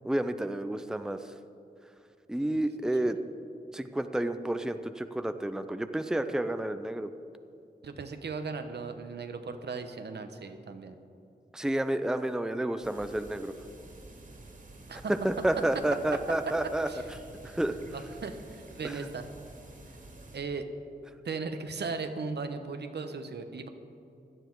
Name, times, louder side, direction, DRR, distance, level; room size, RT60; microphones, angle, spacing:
voice 1, 0.0-1.3 2.3-3.2 3.7-7.1 11.5-13.5 15.2-16.9 17.4-17.8 18.8-19.0, right 1 dB, 5° right, 9 dB, 0.6 m, -30 dB
voice 2, 7.8-11.0 14.9-15.1 16.9-17.0 17.4-17.6 17.9-19.3 20.3-20.6 21.2-23.7, right 4 dB, 85° right, 7 dB, 1.0 m, -37 dB
sound 1, 12.8-20.4, right 2 dB, 50° right, 2.2 m, -49 dB
16.5 x 11.5 x 4.7 m, 2.7 s
wide cardioid pair, 85°, 17 cm